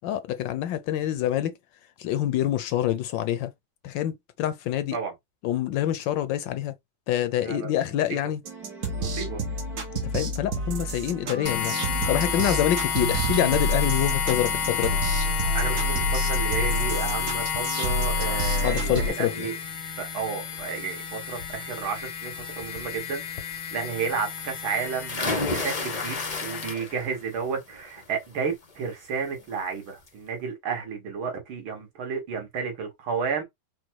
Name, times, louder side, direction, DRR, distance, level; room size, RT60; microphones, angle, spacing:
voice 1, 0.0-1.5 2.0-3.5 3.8-5.0 5.4-6.7 7.1-8.4 10.1-11.8 12.1-15.0 18.6-19.5, left 12 dB, 75° left, 1.2 m, -26 dB
sound 1, 8.5-19.1, right 1 dB, 55° right, 1.3 m, -29 dB
voice 2, 9.0-9.4 15.5-19.5 20.0-33.4, right 5 dB, 80° right, 2.4 m, -32 dB
sound 2, 11.5-26.7, left 8 dB, 90° left, 1.8 m, -31 dB
sound 3, 25.1-27.2 27.6-28.0 29.4-29.5 29.9-30.0, left 3 dB, 55° left, 0.4 m, -30 dB
5.0 x 2.2 x 4.6 m
omnidirectional pair, 2.2 m